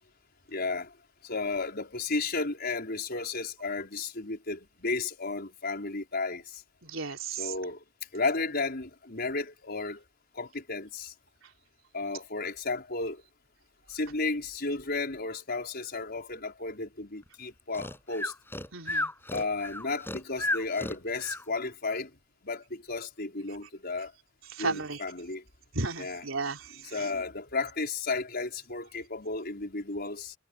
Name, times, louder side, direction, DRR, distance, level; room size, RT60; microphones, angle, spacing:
voice 1, 0.5-0.9 1.2-6.6 7.4-7.8 8.1-10.0 10.3-11.1 11.9-13.2 13.9-18.3 19.3-22.1 22.4-24.1 24.6-25.4 26.0-26.2 26.8-30.3, left 3 dB, 50° left, 5.4 m, -33 dB
voice 2, 6.8-7.5 18.7-19.1 24.5-25.0 25.8-26.6, right 3 dB, 85° right, 3.6 m, -33 dB
Breathing, 17.7-21.4, left 1 dB, 10° left, 7.9 m, -33 dB
head